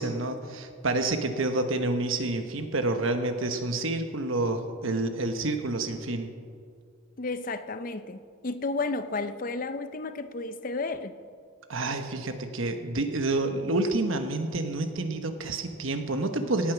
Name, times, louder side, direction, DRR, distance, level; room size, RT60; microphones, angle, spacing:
voice 1, 0.0-6.3 11.7-16.7, right 2 dB, 70° right, 7 dB, 1.2 m, -28 dB
voice 2, 7.2-11.1, left 3 dB, 40° left, 11 dB, 0.5 m, -32 dB
17.5 x 8.5 x 6.1 m, 2.1 s
head